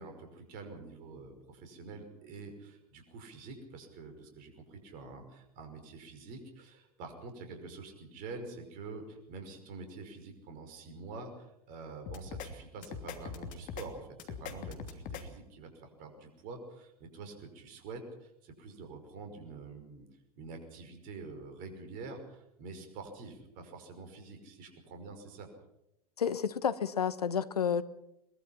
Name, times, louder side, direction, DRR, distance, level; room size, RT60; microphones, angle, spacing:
voice 1, 0.0-20.0 20.4-25.5, right 3 dB, 45° right, 5 dB, 5.6 m, -47 dB
sound 1, 12.1-12.5 12.8-13.9 14.2-15.2, left 7 dB, 40° left, 2.8 m, -41 dB
voice 2, 26.2-27.8, left 7 dB, 75° left, 15 dB, 1.2 m, -30 dB
22.5 x 21.5 x 5.9 m, 0.84 s
figure-of-eight pair, 85°, 20 cm